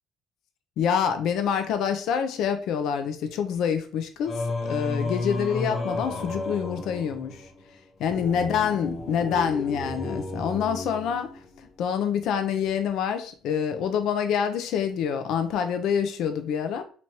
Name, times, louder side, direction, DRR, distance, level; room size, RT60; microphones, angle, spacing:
voice 1, 0.8-4.3 4.6-7.4 8.0-11.3 11.8-16.8, left 7 dB, 75° left, 7 dB, 0.6 m, -26 dB
Singing, 4.3-11.6, left 2 dB, 35° left, 1.0 m, -33 dB
3.0 x 2.8 x 4.5 m, 0.40 s
cardioid pair, 95°, 0 cm